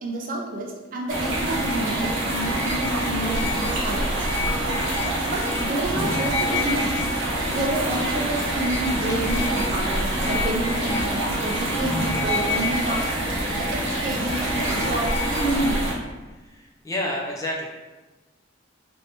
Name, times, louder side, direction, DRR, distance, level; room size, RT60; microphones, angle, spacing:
voice 1, 0.0-4.3 4.8-7.1 7.5-13.1 13.5-15.8, right 1 dB, 45° right, 0 dB, 0.5 m, -29 dB
sound 1, 1.1-15.9, equal, 70° right, 0.8 m, -25 dB
sound 2, 2.2-15.6, right 1 dB, 5° right, 1.2 m, -45 dB
sound 3, 4.1-14.1, right 1 dB, 30° right, 1.0 m, -45 dB
voice 2, 16.3-17.7, left 1 dB, 15° left, -2 dB, 0.4 m, -30 dB
3.3 x 2.6 x 2.8 m, 1.2 s
head